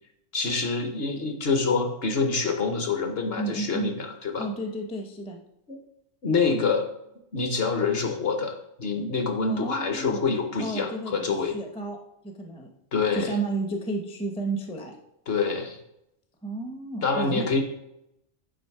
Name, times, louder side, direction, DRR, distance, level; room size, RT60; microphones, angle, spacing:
voice 1, 0.3-4.5 6.2-6.9 7.3-8.5 8.8-11.5 12.9-13.3 15.3-15.8 17.0-17.6, left 4 dB, 55° left, 5 dB, 0.9 m, -26 dB
voice 2, 3.4-3.9 4.4-5.4 9.5-10.2 10.6-12.0 12.2-12.7 13.1-14.9 16.4-17.6, right 2 dB, 5° left, 3 dB, 0.4 m, -32 dB
8.6 x 3.0 x 4.6 m, 0.81 s
omnidirectional pair, 1.4 m